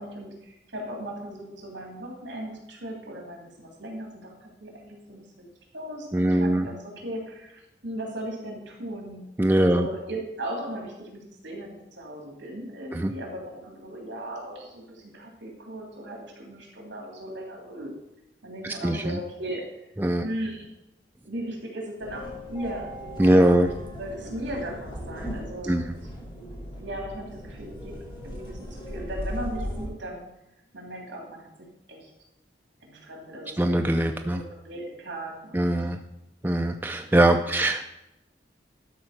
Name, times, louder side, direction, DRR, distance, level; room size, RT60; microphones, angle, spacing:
voice 1, 0.0-5.4 5.7-9.2 9.6-17.9 18.4-19.6 20.2-20.7 21.2-22.9 23.2-25.8 26.8-27.9 28.2-30.3 30.7-31.5 31.9-32.1 32.8-35.8 37.5-37.9, right 1 dB, 70° right, 0 dB, 3.1 m, -37 dB
voice 2, 6.1-6.7 9.4-9.9 12.9-13.1 18.8-19.2 20.0-20.2 23.2-23.7 25.7-25.8 33.6-34.4 35.5-36.0 36.4-37.8, right 1 dB, 10° right, 4 dB, 0.4 m, -21 dB
sound 1, 22.0-29.9, equal, 25° left, 3.1 m, -38 dB
12.5 x 4.3 x 6.5 m, 0.88 s
head